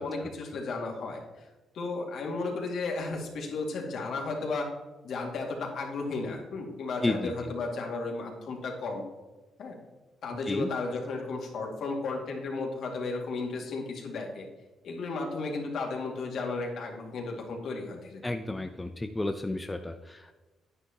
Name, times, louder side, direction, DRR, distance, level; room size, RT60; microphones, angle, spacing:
voice 1, 0.0-1.5 1.7-4.7 5.0-9.0 9.6-9.8 10.2-14.5 14.8-18.2, left 3 dB, 70° left, 0 dB, 2.3 m, -34 dB
voice 2, 7.0-7.5 10.5-10.7 18.2-20.3, left 2 dB, 15° left, 7 dB, 0.6 m, -32 dB
9.8 x 9.4 x 3.0 m, 1.2 s
cardioid pair, 90°, 0 cm